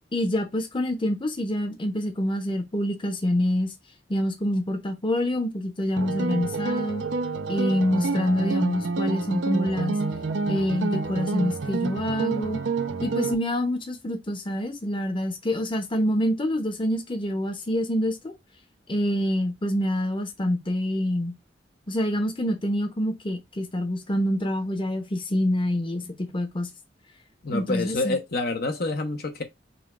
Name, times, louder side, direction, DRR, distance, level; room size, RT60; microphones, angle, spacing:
voice 1, 0.1-3.7 4.1-7.0 7.5-10.0 10.5-12.6 13.0-18.3 18.9-21.4 21.9-26.7 27.5-28.2, left 1 dB, 30° left, 0.9 m, -26 dB
sound 1, 6.0-13.3, right 3 dB, 90° right, 0.6 m, -28 dB
voice 2, 27.4-29.4, left 3 dB, 55° left, 0.9 m, -27 dB
5.5 x 2.3 x 4.2 m
head